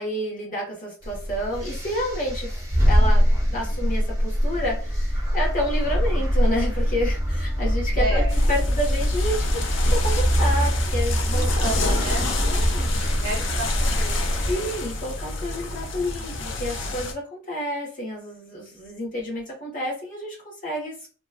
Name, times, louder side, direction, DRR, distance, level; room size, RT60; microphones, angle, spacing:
voice 1, 0.0-9.5 9.9-11.7 12.4-12.9 14.5-21.1, equal, 45° left, -3 dB, 1.3 m, -30 dB
sound 1, 1.0-14.5, equal, 15° right, 1.1 m, -23 dB
voice 2, 7.9-8.3 11.2-12.8 13.2-14.6, right 2 dB, 45° right, -1 dB, 1.3 m, -33 dB
sound 2, 8.3-17.1, left 3 dB, 70° left, 0.5 m, -30 dB
2.9 x 2.4 x 2.3 m, 0.36 s
head